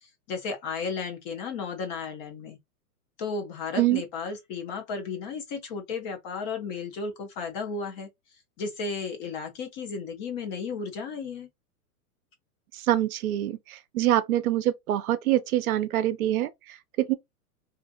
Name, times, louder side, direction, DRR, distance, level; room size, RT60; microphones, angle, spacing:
voice 1, 0.0-2.6 3.2-8.1 8.6-11.5, left 5 dB, 30° left, 0.5 m, -34 dB
voice 2, 12.9-16.5 17.0-17.1, right 13 dB, 65° right, 0.6 m, -25 dB
2.6 x 2.5 x 2.5 m
hypercardioid pair, 135°, 46 cm